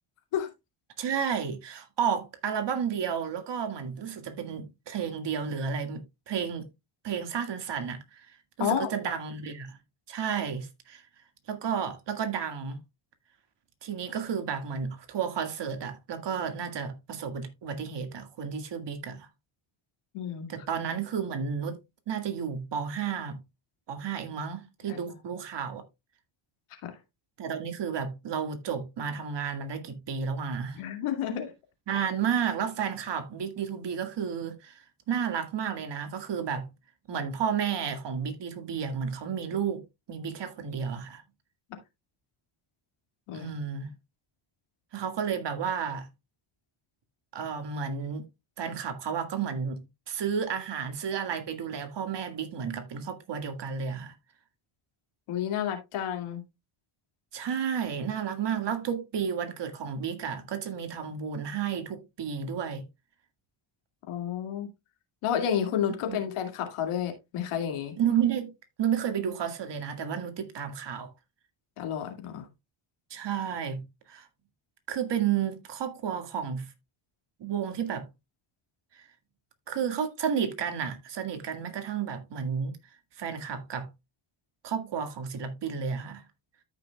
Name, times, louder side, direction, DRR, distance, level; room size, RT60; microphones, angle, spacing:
voice 1, 1.0-6.7 7.0-8.3 8.6-9.8 10.1-11.0 11.5-12.8 13.8-19.3 20.5-21.8 22.1-23.4 23.9-25.8 27.4-30.8 31.9-36.7 37.1-39.8 40.1-41.2 43.3-43.9 44.9-46.1 47.3-48.3 48.6-49.8 50.1-54.1 57.3-62.8 66.1-66.2 68.0-68.5 68.8-71.1 73.1-74.3 74.9-76.7 77.4-78.1 78.9-79.0 79.7-82.8 83.1-83.9 84.6-86.2, right 7 dB, 55° right, 2.0 m, -32 dB
voice 2, 20.1-20.5 24.9-25.0 26.8-27.0 30.7-31.5 41.7-41.8 43.3-43.5 55.3-56.4 64.1-64.7 65.2-67.9 71.8-72.5, left 9 dB, 90° left, 2.3 m, -30 dB
13.5 x 5.8 x 2.3 m
cardioid pair, 100°, 49 cm